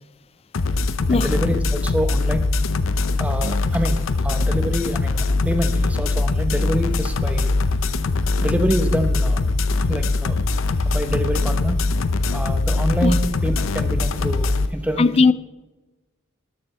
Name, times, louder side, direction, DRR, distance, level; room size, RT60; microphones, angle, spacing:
sound 1, 0.5-14.7, left 3 dB, 75° left, 0.6 m, -22 dB
voice 1, 1.1-2.5 3.2-7.5 8.4-9.4 9.9-10.4 10.8-11.8 12.3-15.1, right 1 dB, 5° right, 0.9 m, -26 dB
voice 2, 15.0-15.3, left 4 dB, 30° left, 0.4 m, -16 dB
13.0 x 11.5 x 3.3 m
head